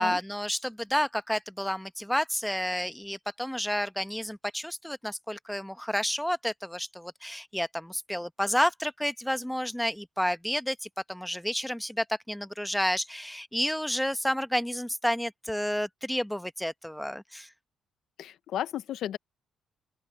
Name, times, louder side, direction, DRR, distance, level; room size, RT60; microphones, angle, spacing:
voice 1, 0.0-17.5, equal, 5° left, 0.9 m, -30 dB
voice 2, 18.2-19.2, left 11 dB, 75° left, 0.7 m, -33 dB
open air
cardioid pair, 90°, 0 cm